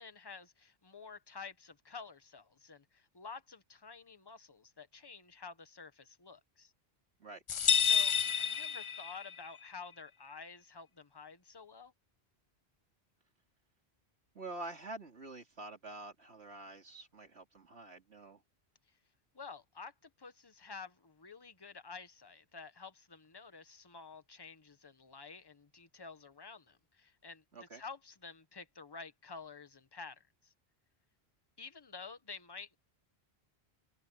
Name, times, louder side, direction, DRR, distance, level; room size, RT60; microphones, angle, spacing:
voice 1, 0.0-6.7 7.8-11.9 19.3-27.4 27.7-30.5 31.6-32.8, left 5 dB, 25° left, 1.2 m, -50 dB
sound 1, 7.5-9.4, left 7 dB, 50° left, 0.4 m, -29 dB
voice 2, 14.4-18.4 27.5-27.8, right 2 dB, 80° right, 3.5 m, -47 dB
omnidirectional pair, 1.1 m